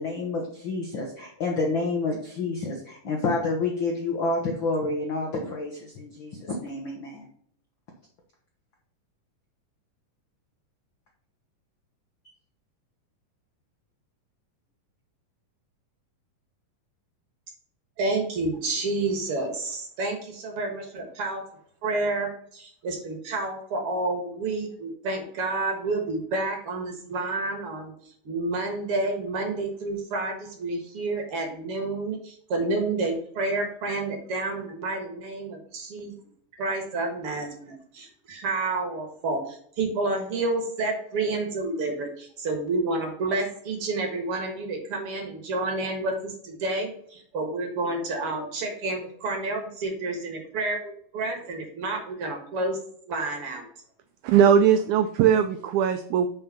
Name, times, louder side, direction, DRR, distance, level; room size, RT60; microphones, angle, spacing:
voice 1, 0.0-7.3, left 3 dB, 85° left, 1 dB, 1.0 m, -29 dB
voice 2, 18.0-21.4 21.8-27.9 28.2-36.2 36.6-52.8 53.1-53.6, right 2 dB, 50° right, 3 dB, 2.0 m, -29 dB
voice 3, 54.2-56.3, right 8 dB, 85° right, 9 dB, 1.7 m, -19 dB
5.6 x 5.3 x 5.8 m, 0.63 s
omnidirectional pair, 3.9 m